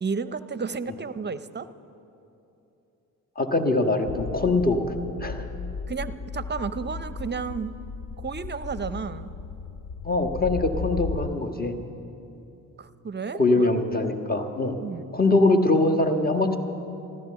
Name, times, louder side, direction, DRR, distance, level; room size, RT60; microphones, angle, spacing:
voice 1, 0.0-1.7 5.9-7.7 8.2-9.3 12.8-13.7 14.8-15.1, right 5 dB, 25° right, 14 dB, 0.7 m, -32 dB
voice 2, 3.3-4.8 5.2-5.5 10.0-11.8 13.4-14.7 15.1-16.6, left 2 dB, 25° left, 4 dB, 1.5 m, -22 dB
sound 1, 4.0-11.3, left 5 dB, 45° left, 0.6 m, -35 dB
14.5 x 12.5 x 7.0 m, 2.9 s
supercardioid pair, 50°, 38 cm